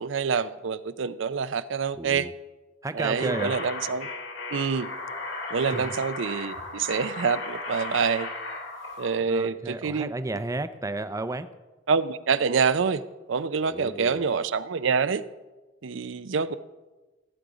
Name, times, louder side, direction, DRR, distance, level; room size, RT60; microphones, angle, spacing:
voice 1, 0.0-2.3 2.9-4.1 4.5-4.9 5.5-8.3 9.0-10.1 11.9-13.0 13.3-15.2 15.8-16.6, right 5 dB, 80° right, 14 dB, 0.5 m, -26 dB
voice 2, 1.9-2.3 2.8-3.6 5.6-6.0 9.3-11.5 13.6-14.2, right 2 dB, 15° right, 11 dB, 0.5 m, -32 dB
sound 1, 3.1-9.1, left 3 dB, 70° left, 2.9 m, -36 dB
15.5 x 8.2 x 5.0 m, 1.2 s
head